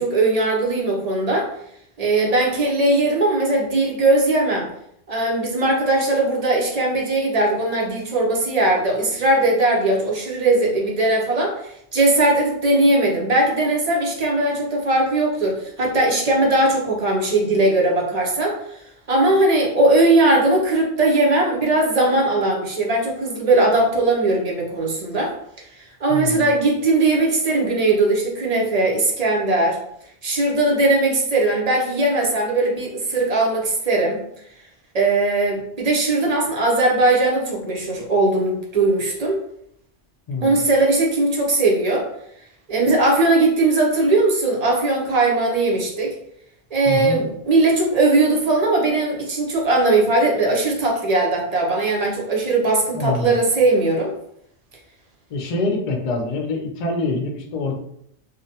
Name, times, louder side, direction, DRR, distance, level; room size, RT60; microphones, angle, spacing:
voice 1, 0.0-1.5 2.0-4.7 5.1-18.8 19.1-25.3 26.0-29.8 30.2-34.2 34.9-39.4 40.4-42.1 42.7-46.2 46.7-54.1, right 2 dB, 50° right, -1 dB, 0.5 m, -19 dB
voice 2, 26.1-26.5 40.3-40.6 46.9-47.2 52.9-53.3 55.3-57.7, left 2 dB, 55° left, 2 dB, 0.5 m, -25 dB
2.4 x 2.1 x 2.7 m, 0.72 s
omnidirectional pair, 1.1 m